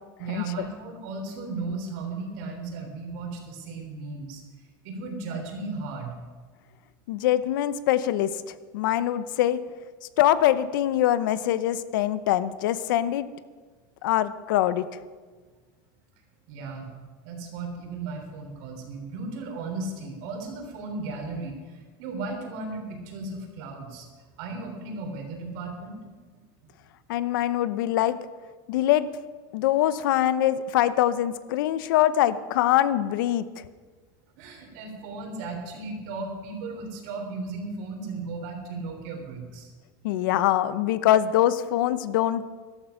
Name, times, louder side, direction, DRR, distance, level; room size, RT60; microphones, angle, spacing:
voice 1, 0.2-6.2 16.5-16.9 17.2-24.1 24.4-26.0 26.3-26.4 34.4-39.7, right 3 dB, 60° right, 3 dB, 3.5 m, -35 dB
voice 2, 7.1-8.3 8.7-9.6 10.2-13.3 14.0-14.9 27.1-28.2 28.7-29.1 29.5-33.4 40.0-42.5, left 12 dB, 75° left, 15 dB, 0.8 m, -23 dB
13.5 x 12.0 x 5.8 m, 1.5 s
supercardioid pair, 150°, 11 cm